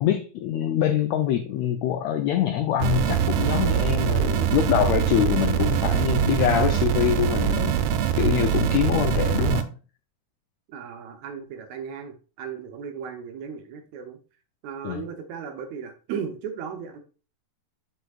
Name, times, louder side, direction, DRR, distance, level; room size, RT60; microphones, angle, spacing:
voice 1, 0.0-7.8 8.2-9.7 14.8-15.0, left 10 dB, 90° left, 7 dB, 1.5 m, -24 dB
sound 1, 2.8-9.6, right 9 dB, 90° right, 2.2 m, -23 dB
voice 2, 10.7-14.2 14.6-17.0, right 7 dB, 70° right, 6 dB, 1.9 m, -36 dB
7.9 x 6.2 x 2.4 m, 0.35 s
omnidirectional pair, 3.8 m